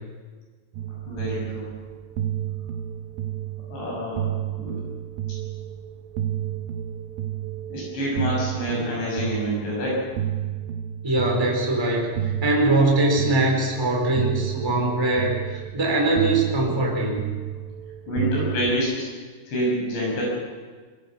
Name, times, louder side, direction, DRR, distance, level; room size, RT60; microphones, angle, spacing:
sound 1, 0.7-18.8, right 11 dB, 75° right, 2.3 m, -31 dB
voice 1, 1.1-1.7 3.7-4.3 4.6-4.8 7.7-10.1 18.1-19.1 19.5-20.2, equal, 65° left, -3 dB, 8.9 m, -27 dB
voice 2, 11.0-17.3, right 2 dB, 5° right, -1 dB, 3.6 m, -22 dB
21.5 x 18.0 x 7.2 m, 1.4 s
omnidirectional pair, 5.6 m